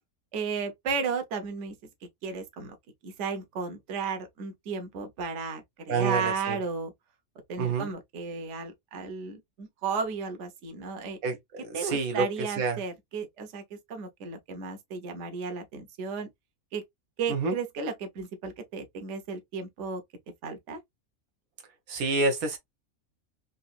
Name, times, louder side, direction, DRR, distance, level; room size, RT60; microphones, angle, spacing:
voice 1, 0.3-1.8 2.2-2.7 3.0-6.9 7.5-11.2 11.7-16.3 16.7-16.8 17.2-20.0 20.4-20.8, right 5 dB, 60° right, 1.1 m, -34 dB
voice 2, 5.9-6.6 7.6-7.9 11.2-12.3 12.6-12.8 17.3-17.6 21.9-22.6, right 3 dB, 80° right, 1.2 m, -28 dB
3.9 x 2.6 x 2.4 m
omnidirectional pair, 1.5 m